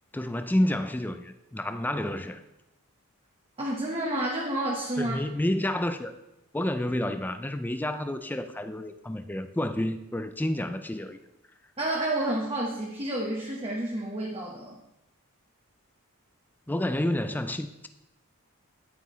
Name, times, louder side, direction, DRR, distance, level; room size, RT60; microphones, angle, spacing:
voice 1, 0.1-2.4 5.0-6.1 6.5-11.2 16.7-17.9, left 1 dB, 10° left, 0.4 m, -29 dB
voice 2, 3.6-5.2 11.8-14.8, right 1 dB, 25° right, 1.0 m, -30 dB
9.4 x 9.4 x 3.1 m
head